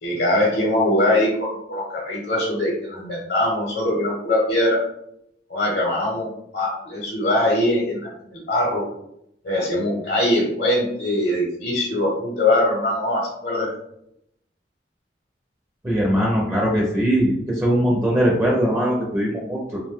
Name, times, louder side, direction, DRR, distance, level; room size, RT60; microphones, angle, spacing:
voice 1, 0.0-4.8 5.5-8.8 9.4-13.7, left 1 dB, 65° left, -2 dB, 0.7 m, -22 dB
voice 2, 15.8-19.8, equal, 15° right, -2 dB, 0.4 m, -20 dB
2.6 x 2.1 x 3.4 m, 0.78 s
head